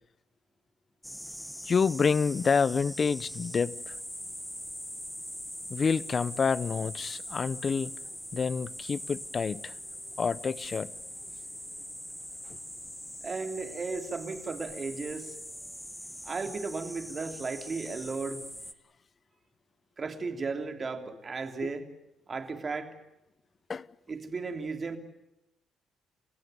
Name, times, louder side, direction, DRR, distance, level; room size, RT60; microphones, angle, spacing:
sound 1, 1.0-18.7, equal, 5° left, 1.6 m, -42 dB
voice 1, 1.7-3.8 5.7-7.9 8.3-9.7 10.2-10.9 23.7-23.8, left 5 dB, 40° left, 0.9 m, -28 dB
voice 2, 13.2-15.4 16.2-18.4 20.0-21.9 22.3-22.9 24.1-25.0, right 4 dB, 35° right, 3.3 m, -35 dB
30.0 x 16.0 x 9.4 m
cardioid pair, 90°, 0 cm